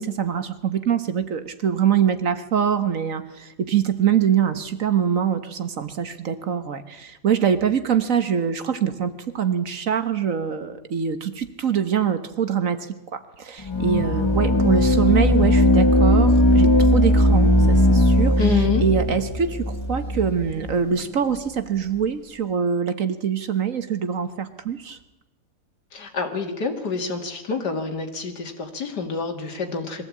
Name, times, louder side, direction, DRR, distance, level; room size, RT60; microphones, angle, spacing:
voice 1, 0.0-25.0, right 8 dB, 55° right, 10 dB, 1.4 m, -24 dB
sound 1, 13.7-20.8, left 1 dB, 25° left, 0.7 m, -18 dB
voice 2, 18.4-18.8 25.9-30.0, left 5 dB, 75° left, 5 dB, 2.7 m, -27 dB
22.5 x 15.5 x 8.5 m, 0.98 s
omnidirectional pair, 1.8 m